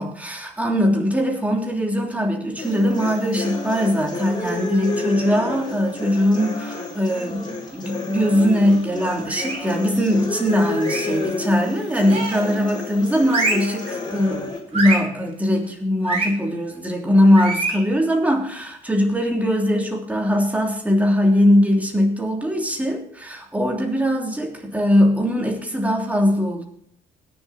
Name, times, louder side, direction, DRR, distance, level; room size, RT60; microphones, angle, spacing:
voice 1, 0.0-26.6, equal, 10° right, 0 dB, 3.2 m, -21 dB
sound 1, 2.6-14.6, left 3 dB, 25° left, 4.2 m, -31 dB
sound 2, 9.2-9.7 10.8-11.2 12.1-12.5 13.3-13.7 14.7-15.1 16.0-16.3 17.3-17.8, right 3 dB, 35° right, 5.4 m, -25 dB
19.5 x 7.3 x 4.4 m, 0.65 s
cardioid pair, 110°, 17 cm